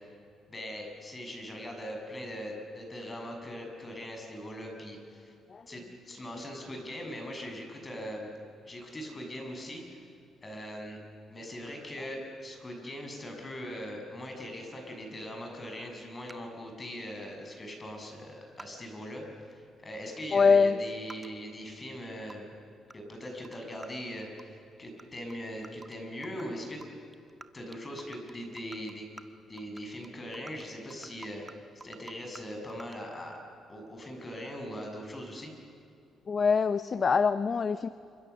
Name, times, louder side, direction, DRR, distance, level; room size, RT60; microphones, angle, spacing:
voice 1, 0.5-5.3 5.7-8.3 8.7-10.1 10.4-11.0 11.3-22.5 22.9-26.8 27.5-29.1 29.5-31.4 31.8-33.4 33.7-35.5, equal, 25° left, 2 dB, 6.9 m, -41 dB
sound 1, 16.3-16.4 18.1-18.2 18.5-18.9 19.5-19.6 19.9-20.1 20.4-20.5 21.1-21.3 21.8-22.4 22.9-23.0 23.2-23.6 23.8-23.9 24.4-24.5 24.7-25.0 25.3-25.4 25.6-26.0 26.2-26.4 26.8-26.9 27.1-27.5 27.7-29.2 29.6-32.4 32.7-33.0, right 3 dB, 20° right, 1.3 m, -48 dB
voice 2, 20.3-20.8 36.3-37.9, left 5 dB, 45° left, 13 dB, 0.7 m, -24 dB
29.0 x 26.0 x 7.0 m, 2.7 s
cardioid pair, 90°, 0 cm